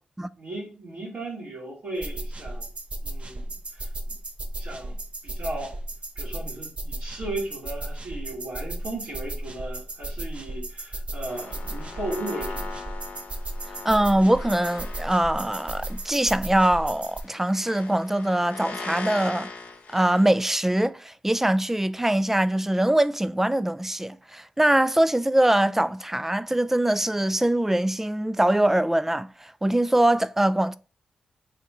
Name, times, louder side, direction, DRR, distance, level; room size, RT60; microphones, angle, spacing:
voice 1, 0.4-2.7 3.0-3.9 4.6-5.0 5.2-5.7 6.2-12.7, right 2 dB, 75° right, 1.9 m, -36 dB
sound 1, 2.0-17.2, right 1 dB, 45° right, 0.8 m, -35 dB
sound 2, 11.3-20.8, left 4 dB, 70° left, 0.9 m, -40 dB
voice 2, 13.8-19.5 19.9-30.8, right 1 dB, 10° right, 0.3 m, -23 dB
3.5 x 2.9 x 4.7 m
supercardioid pair, 45°, 3 cm